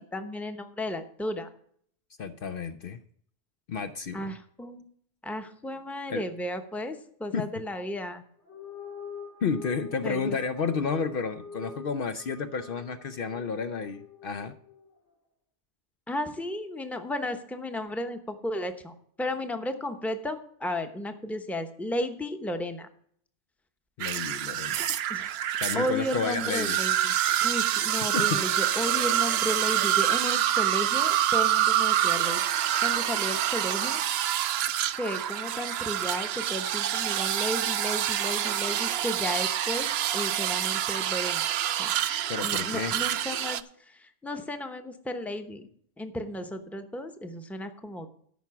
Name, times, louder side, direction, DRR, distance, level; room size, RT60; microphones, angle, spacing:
voice 1, 0.0-1.5 4.1-4.9 5.2-8.2 10.0-10.4 16.1-22.9 25.1-25.4 25.7-27.1 27.4-32.4 32.8-34.0 35.0-41.5 41.8-42.1 42.4-45.7 46.0-48.1, left 1 dB, ahead, 6 dB, 0.8 m, -34 dB
voice 2, 2.2-3.0 3.7-4.3 6.1-6.2 7.3-7.4 9.4-14.6 24.0-24.9 25.6-26.8 28.1-28.4 42.3-42.9, left 5 dB, 60° left, 9 dB, 0.7 m, -31 dB
sound 1, 8.4-15.0, left 4 dB, 85° left, 2.6 m, -45 dB
sound 2, 24.0-43.6, right 11 dB, 70° right, 0.8 m, -27 dB
13.5 x 5.9 x 5.8 m, 0.63 s
omnidirectional pair, 1.1 m